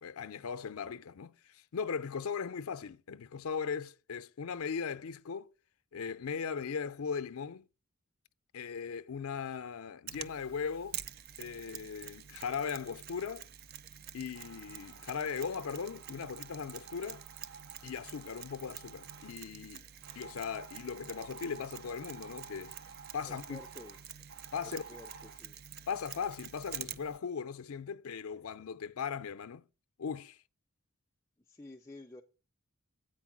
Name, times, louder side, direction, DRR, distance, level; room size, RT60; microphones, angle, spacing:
voice 1, 0.0-5.5 5.9-7.7 8.5-11.0 11.4-13.5 14.1-17.2 17.8-19.9 20.2-22.7 23.1-23.6 24.5-24.8 25.9-29.7 30.0-30.4, left 6 dB, 75° left, 0.5 m, -38 dB
Mechanisms, 10.1-27.2, right 10 dB, 45° right, 0.3 m, -48 dB
sound 1, 14.3-19.4 20.0-25.4, right 5 dB, 85° right, 1.8 m, -53 dB
voice 2, 23.2-24.0 24.6-25.6 31.5-32.2, left 2 dB, 15° left, 0.5 m, -51 dB
8.8 x 4.6 x 6.0 m
head